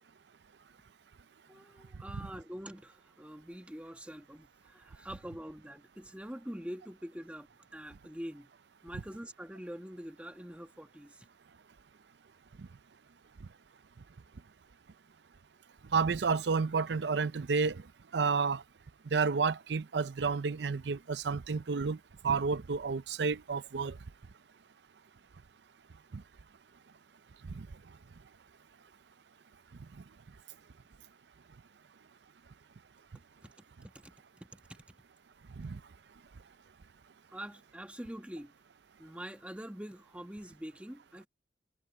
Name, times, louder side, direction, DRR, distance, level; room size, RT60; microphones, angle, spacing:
voice 1, 1.5-8.5 8.8-11.3 33.4-33.5 33.8-34.8 37.3-38.5 39.0-41.3, equal, 5° right, 1.4 m, -45 dB
voice 2, 15.9-17.8 18.1-18.6 19.1-22.0 22.2-24.0 26.1-26.2 27.5-27.7 35.6-35.8, right 5 dB, 85° right, 0.6 m, -30 dB
head